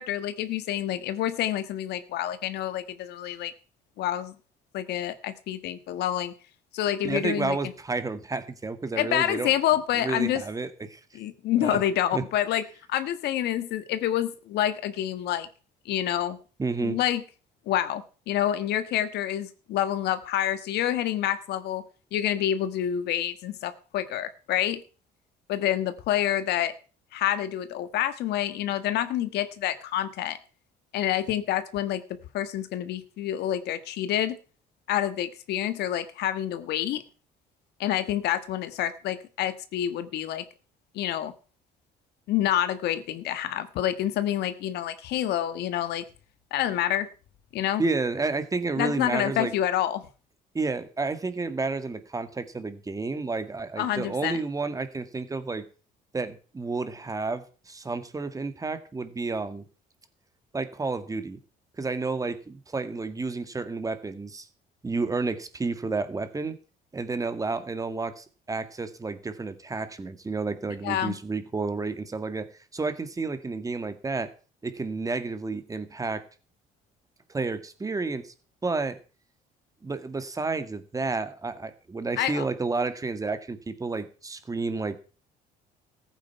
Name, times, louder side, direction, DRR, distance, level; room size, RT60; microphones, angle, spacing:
voice 1, 0.0-3.5 4.0-4.3 4.7-6.3 6.7-7.6 9.0-10.4 11.1-15.5 15.8-16.4 16.8-17.2 17.7-21.8 22.1-24.8 25.5-26.7 27.1-30.4 30.9-32.0 32.3-34.4 34.9-37.0 37.8-40.4 40.9-41.3 42.3-46.0 46.5-47.1 47.5-47.8 48.8-50.0 53.8-54.4 70.8-71.1 82.2-82.4, left 11 dB, 75° left, 12 dB, 1.5 m, -27 dB
voice 2, 7.0-9.5 9.9-11.0 11.6-11.8 12.1-12.2 16.6-17.0 47.8-49.5 50.5-55.7 56.1-59.7 60.5-61.4 61.8-64.5 64.8-66.6 66.9-74.3 74.6-76.2 77.3-78.3 78.6-79.0 79.8-85.0, right 3 dB, 20° right, 11 dB, 1.8 m, -31 dB
15.0 x 9.1 x 5.7 m, 0.37 s
cardioid pair, 110°, 17 cm